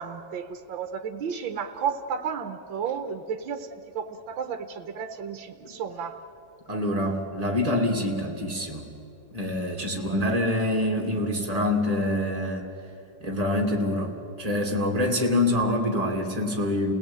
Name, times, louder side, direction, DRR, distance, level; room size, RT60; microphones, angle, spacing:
voice 1, 0.0-6.2 10.0-10.4, right 7 dB, 75° right, 6 dB, 1.8 m, -33 dB
voice 2, 6.7-8.9 9.3-12.7 13.2-16.9, left 1 dB, 20° right, 1 dB, 2.6 m, -26 dB
29.5 x 17.5 x 9.0 m, 2.7 s
omnidirectional pair, 2.1 m